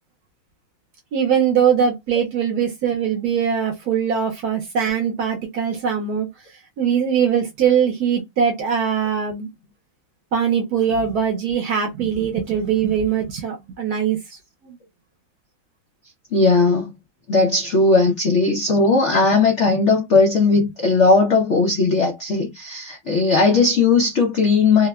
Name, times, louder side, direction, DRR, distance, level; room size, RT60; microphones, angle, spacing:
voice 1, 1.1-6.3 6.8-9.5 10.3-14.4 14.6-14.8, right 7 dB, 70° right, 1.0 m, -21 dB
voice 2, 16.3-16.9 17.3-24.9, left 3 dB, 80° left, 0.6 m, -17 dB
3.4 x 2.0 x 2.3 m
omnidirectional pair, 2.1 m